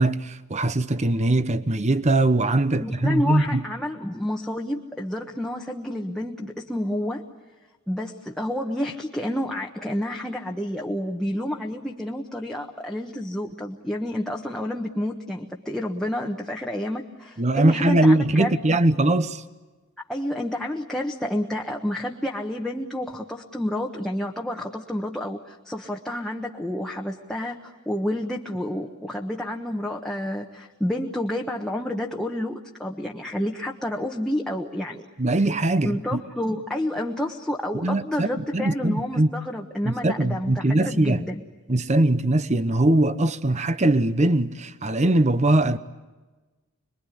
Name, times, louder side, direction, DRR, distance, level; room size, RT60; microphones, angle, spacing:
voice 1, 0.0-3.6 17.4-19.4 35.2-36.2 37.7-39.3 39.8-41.2 41.7-45.8, right 2 dB, 35° right, 0.9 m, -21 dB
voice 2, 2.7-7.2 7.9-18.8 20.1-35.1 35.8-41.4, left 1 dB, 5° left, 1.2 m, -29 dB
27.0 x 22.0 x 9.9 m
head